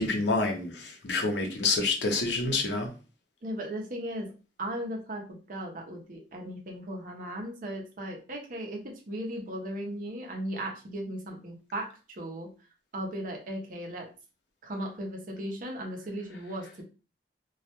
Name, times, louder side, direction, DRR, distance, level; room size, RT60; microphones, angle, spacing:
voice 1, 0.0-2.9, left 3 dB, 75° left, 0.6 m, -28 dB
voice 2, 3.4-4.3 4.6-12.5 12.9-14.1 14.6-16.8, right 1 dB, 50° right, 0.7 m, -37 dB
2.3 x 2.1 x 2.8 m
head